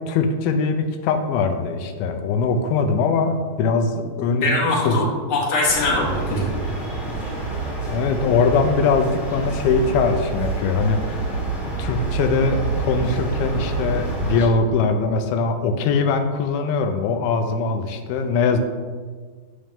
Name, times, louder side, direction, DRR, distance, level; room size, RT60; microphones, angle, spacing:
voice 1, 0.1-4.5 4.9-5.0 7.9-11.5 11.8-18.6, left 4 dB, 85° left, 6 dB, 2.5 m, -21 dB
voice 2, 4.0-6.5, left 2 dB, 35° left, -5 dB, 1.9 m, -22 dB
sound 1, 5.6-14.5, right 3 dB, 35° right, 0.7 m, -27 dB
8.7 x 7.3 x 3.5 m, 1.5 s
omnidirectional pair, 4.3 m